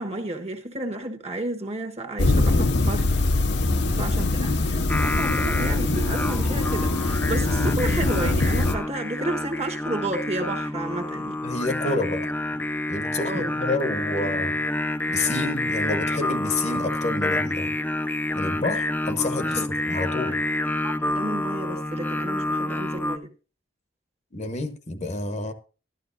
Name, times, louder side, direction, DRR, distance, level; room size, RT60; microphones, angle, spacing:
voice 1, 0.0-3.1 3.9-11.4 13.2-14.3 19.4-20.4 20.8-23.3, right 2 dB, 35° right, 1.3 m, -32 dB
sound 1, 2.2-8.7, left 2 dB, 65° left, 0.9 m, -23 dB
voice 2, 3.6-4.1 11.4-12.3 12.9-14.6 15.1-17.7 18.3-20.4 24.3-25.5, left 2 dB, 40° left, 1.0 m, -29 dB
Singing, 4.9-23.2, left 1 dB, 10° left, 0.5 m, -28 dB
13.0 x 12.0 x 2.6 m
head